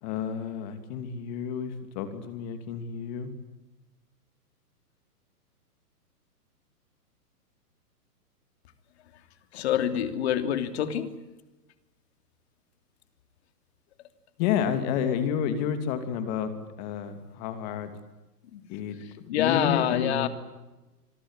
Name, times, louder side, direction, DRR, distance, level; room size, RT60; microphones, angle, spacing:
voice 1, 0.0-3.3 14.4-16.5 16.8-17.9 18.7-19.0 19.2-20.3, left 8 dB, 25° left, 9 dB, 2.8 m, -30 dB
voice 2, 9.5-11.1 18.5-18.6 19.3-20.3, left 10 dB, 40° left, 9 dB, 3.1 m, -26 dB
27.0 x 21.5 x 9.8 m, 1.1 s
hypercardioid pair, 165°, 47 cm